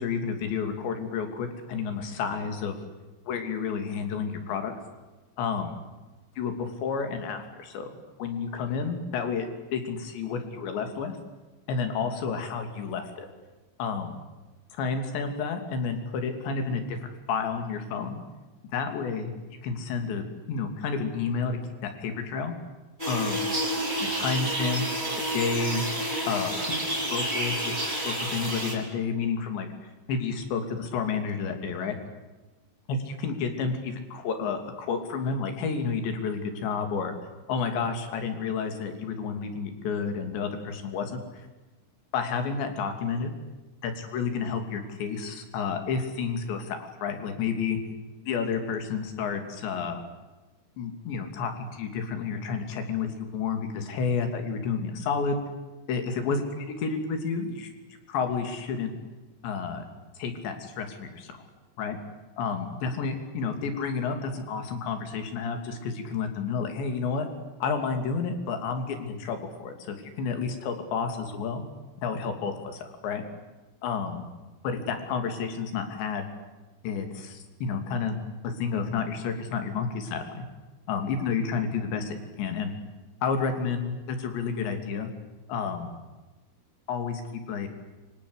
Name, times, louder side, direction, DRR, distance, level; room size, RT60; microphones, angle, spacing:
voice 1, 0.0-2.8 3.3-4.7 5.4-5.7 6.4-7.9 8.2-11.2 11.7-13.3 13.8-14.2 14.7-18.2 18.7-19.3 19.6-22.5 23.1-23.5 24.0-24.8 25.3-25.8 26.3-32.0 32.9-37.1 37.5-41.2 42.1-43.3 43.8-47.8 48.3-50.0 50.8-55.4 55.9-57.7 58.1-58.9 59.4-59.8 60.2-61.4 61.8-62.0 62.4-67.3 67.6-71.6 72.0-73.2 73.8-74.3 74.6-76.3 76.8-78.2 78.4-80.4 80.9-82.7 83.2-85.1 85.5-85.9 86.9-87.7, left 5 dB, 65° left, 6 dB, 4.9 m, -30 dB
sound 1, 23.0-28.7, right 1 dB, 10° right, 5.5 m, -29 dB
29.0 x 24.5 x 8.2 m, 1.2 s
omnidirectional pair, 5.7 m